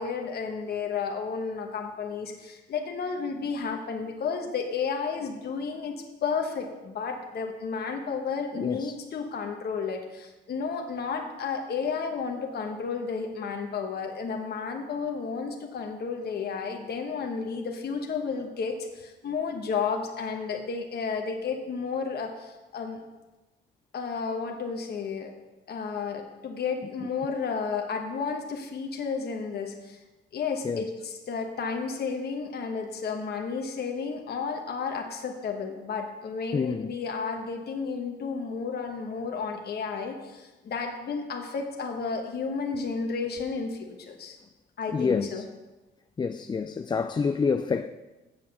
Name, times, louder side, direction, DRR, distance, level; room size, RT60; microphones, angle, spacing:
voice 1, 0.0-23.0 23.9-25.3 25.7-30.0 30.3-44.4 44.8-45.4, left 5 dB, 55° left, 1.2 m, -32 dB
voice 2, 8.6-9.0 27.0-27.1 30.6-30.9 36.5-36.9 44.9-45.4 46.2-47.9, left 5 dB, 20° left, 0.3 m, -28 dB
7.6 x 7.2 x 6.7 m
cardioid pair, 90°, 20 cm